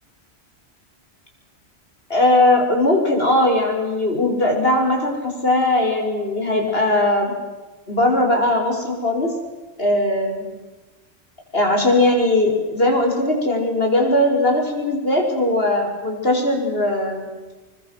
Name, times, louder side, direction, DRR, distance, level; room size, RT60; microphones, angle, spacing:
voice 1, 2.1-7.3 7.9-9.3 9.8-10.4 11.5-17.3, left 1 dB, 60° left, 2 dB, 6.5 m, -19 dB
27.5 x 23.5 x 7.9 m, 1.2 s
omnidirectional pair, 1.1 m